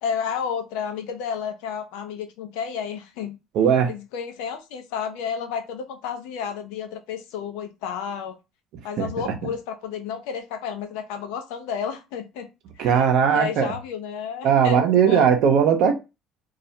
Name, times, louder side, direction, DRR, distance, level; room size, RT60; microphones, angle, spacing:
voice 1, 0.0-3.4 3.9-8.3 8.8-12.5 12.8-15.3, left 7 dB, 80° left, 0.5 m, -31 dB
voice 2, 3.5-3.9 9.0-9.3 12.8-13.7 14.4-15.9, right 7 dB, 65° right, 0.6 m, -19 dB
2.4 x 2.0 x 2.7 m
supercardioid pair, 75°, 0 cm